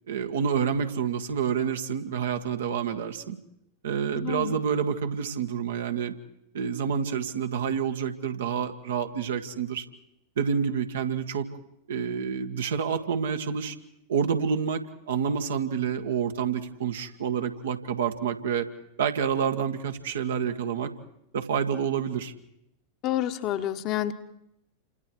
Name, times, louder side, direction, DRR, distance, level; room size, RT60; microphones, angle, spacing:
voice 1, 0.1-3.4 3.8-6.1 6.5-9.9 10.4-11.5 11.9-13.8 14.1-18.7 19.0-20.9 21.3-22.3, right 7 dB, 60° right, 6 dB, 1.8 m, -28 dB
voice 2, 4.1-4.6 23.0-24.1, left 12 dB, 40° left, 7 dB, 1.4 m, -29 dB
29.5 x 26.5 x 4.7 m, 0.81 s
figure-of-eight pair, 90°, 0 cm